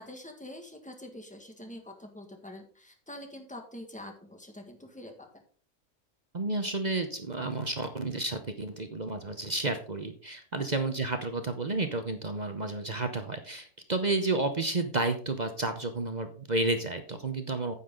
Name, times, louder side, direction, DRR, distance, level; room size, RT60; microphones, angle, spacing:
voice 1, 0.0-5.4 10.5-10.6, left 1 dB, 5° left, 3 dB, 1.7 m, -45 dB
voice 2, 6.3-17.7, right 2 dB, 35° right, 7 dB, 0.9 m, -31 dB
9.5 x 8.5 x 3.8 m, 0.43 s
omnidirectional pair, 1.4 m